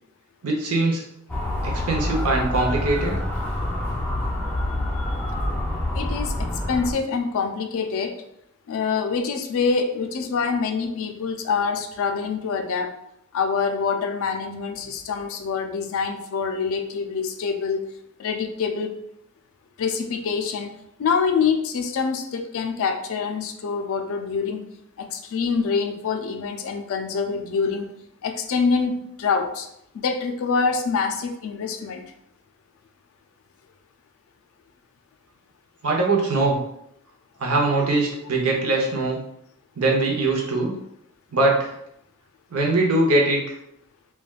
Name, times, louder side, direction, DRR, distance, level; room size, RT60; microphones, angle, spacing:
voice 1, 0.4-1.0 1.6-3.1 35.8-36.5 37.4-39.2 39.8-40.7 41.3-41.7 42.5-43.5, right 2 dB, 80° right, 0 dB, 0.7 m, -21 dB
Motor vehicle (road) / Siren, 1.3-6.9, left 1 dB, 5° left, 0.5 m, -27 dB
voice 2, 5.9-8.2 8.7-12.9 13.3-17.9 18.2-18.9 19.8-20.7 21.0-24.6 25.0-27.9 28.2-29.7 29.9-32.0, left 5 dB, 65° left, 5 dB, 0.4 m, -25 dB
3.2 x 2.2 x 2.3 m, 0.76 s
head